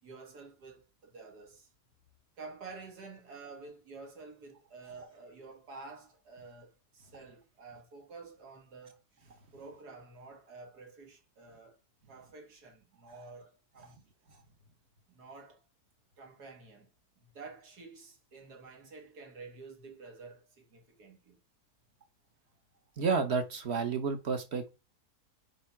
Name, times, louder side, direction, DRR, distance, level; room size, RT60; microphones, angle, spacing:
voice 1, 0.0-1.7 2.4-9.0 9.5-11.8 12.1-14.0 15.1-15.6 16.2-16.9 17.3-21.4, right 4 dB, 80° right, 2.3 m, -50 dB
voice 2, 23.0-24.8, right 5 dB, 45° right, 1.4 m, -31 dB
7.4 x 4.8 x 5.8 m
omnidirectional pair, 1.7 m